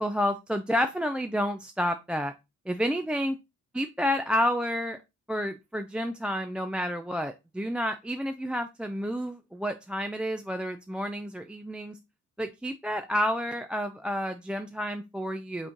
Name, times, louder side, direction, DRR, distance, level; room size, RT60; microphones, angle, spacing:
voice 1, 0.0-2.3 2.7-3.4 3.7-5.0 5.3-12.0 12.4-15.7, equal, 5° right, 7 dB, 0.3 m, -30 dB
5.3 x 3.6 x 2.6 m, 0.24 s
cardioid pair, 90°, 30 cm